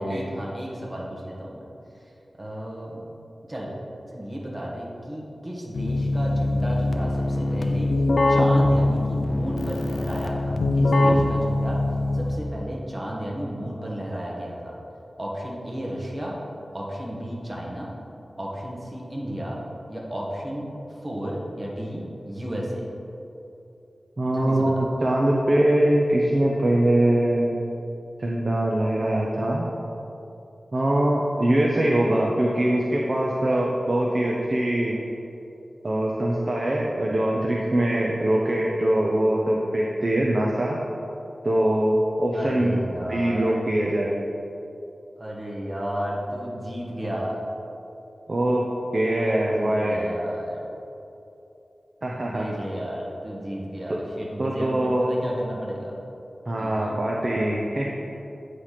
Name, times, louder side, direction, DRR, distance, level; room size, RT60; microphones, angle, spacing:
voice 1, 0.0-1.7 2.4-3.0 3.5-3.7 4.1-7.9 8.3-11.8 12.1-14.8 15.2-16.4 16.7-18.0 18.4-19.6 19.9-22.8 24.3-24.9 42.3-43.6 45.2-47.4 49.4-50.7 52.2-56.0 56.6-57.0, equal, 25° right, -3 dB, 1.4 m, -33 dB
Keyboard (musical), 5.7-12.6, left 2 dB, 75° left, 0.5 m, -22 dB
voice 2, 24.2-27.6 28.2-29.7 30.7-34.9 35.8-40.8 41.4-42.8 43.1-44.2 48.3-48.6 48.9-50.0 52.0-52.5 53.9-54.0 54.4-55.2 56.5-57.9, right 1 dB, 40° right, -2 dB, 0.6 m, -22 dB
8.7 x 3.3 x 5.7 m, 2.8 s
wide cardioid pair, 95°, 0 cm